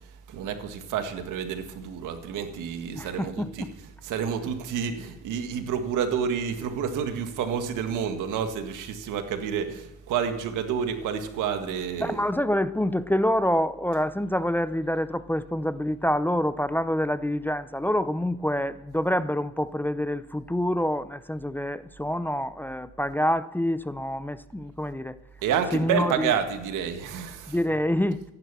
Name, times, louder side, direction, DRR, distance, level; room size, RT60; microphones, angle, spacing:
voice 1, 0.3-12.2 25.4-27.7, right 7 dB, 90° right, 1.8 m, -29 dB
voice 2, 2.9-3.7 12.0-25.2 25.7-26.3 27.5-28.2, left 1 dB, 5° left, 0.6 m, -27 dB
15.5 x 11.0 x 6.9 m
cardioid pair, 90°, 30 cm